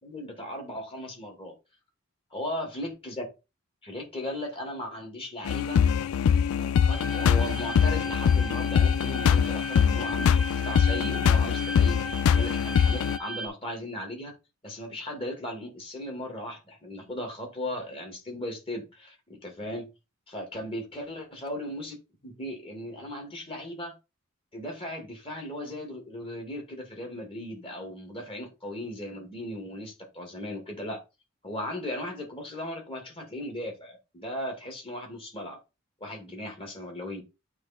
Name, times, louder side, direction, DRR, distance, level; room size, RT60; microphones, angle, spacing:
voice 1, 0.0-1.5 2.3-3.3 3.8-5.8 6.6-14.3 14.6-19.9 20.3-22.0 22.2-23.9 24.5-31.0 31.4-35.6 36.0-37.2, left 1 dB, 25° left, 2 dB, 2.2 m, -37 dB
sound 1, 5.5-13.2, left 7 dB, 80° left, 0.3 m, -23 dB
sound 2, 6.9-13.5, right 1 dB, ahead, 0.8 m, -38 dB
8.6 x 3.2 x 4.3 m, 0.27 s
head